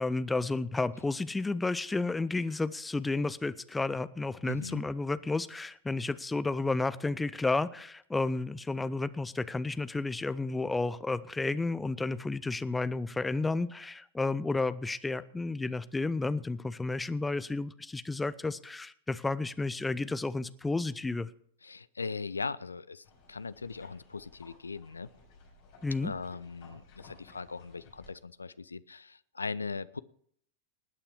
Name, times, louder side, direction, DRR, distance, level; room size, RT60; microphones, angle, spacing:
voice 1, 0.0-21.3 25.8-26.1, left 3 dB, 10° left, 15 dB, 0.6 m, -32 dB
voice 2, 4.5-4.8 21.6-25.1 26.0-30.0, left 4 dB, 75° left, 17 dB, 0.5 m, -39 dB
sound 1, 23.0-28.1, left 3 dB, 45° left, 5.6 m, -57 dB
19.5 x 8.7 x 4.7 m, 0.64 s
figure-of-eight pair, 90°, 0 cm